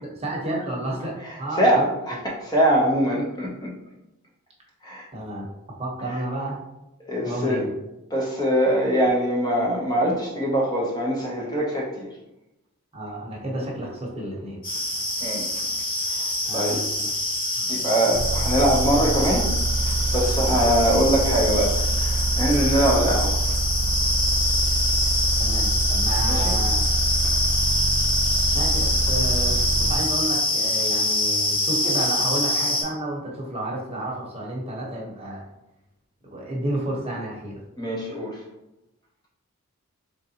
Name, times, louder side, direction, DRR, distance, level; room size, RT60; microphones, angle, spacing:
voice 1, 0.0-1.8 2.1-2.2 5.1-5.5 5.8-6.6 7.2-7.7 12.9-14.6 16.5-17.1 17.5-18.2 20.4-20.6 25.4-26.8 28.5-35.4 36.2-37.6, right 1 dB, 25° right, -3 dB, 1.0 m, -31 dB
voice 2, 1.2-3.7 4.8-5.1 7.1-7.7 8.1-12.1 15.2-15.4 16.1-16.8 17.7-19.5 19.8-23.5 26.3-26.4 37.8-38.4, right 1 dB, 20° left, -3 dB, 0.8 m, -23 dB
sound 1, 14.6-32.8, left 1 dB, 40° left, 1.4 m, -25 dB
sound 2, 18.1-30.0, right 2 dB, 50° right, 0.4 m, -25 dB
3.8 x 3.6 x 2.9 m, 0.91 s
head